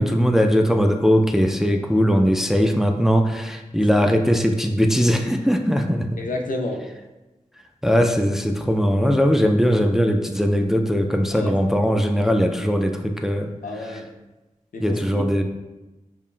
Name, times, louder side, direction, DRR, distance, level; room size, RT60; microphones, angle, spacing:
voice 1, 0.0-6.1 7.8-13.5 14.8-15.4, equal, 5° right, 4 dB, 0.3 m, -20 dB
voice 2, 3.7-4.0 6.2-6.8 11.3-11.6 13.6-14.1 14.7-15.4, left 2 dB, 80° left, 2 dB, 0.5 m, -30 dB
5.4 x 2.1 x 2.4 m, 1.1 s
cardioid pair, 45°, 14 cm